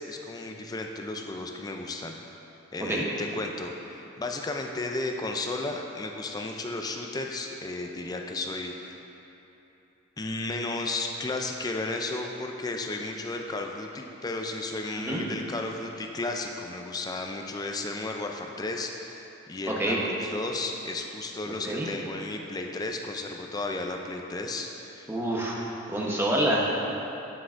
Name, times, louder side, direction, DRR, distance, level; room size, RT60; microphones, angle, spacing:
voice 1, 0.0-2.2 2.7-9.0 10.2-25.1, left 2 dB, 20° left, 3 dB, 0.3 m, -34 dB
voice 2, 19.7-20.0 21.7-21.9 25.1-25.6 25.9-26.7, right 1 dB, 10° right, -4 dB, 0.9 m, -27 dB
8.5 x 7.6 x 2.5 m, 3.0 s
head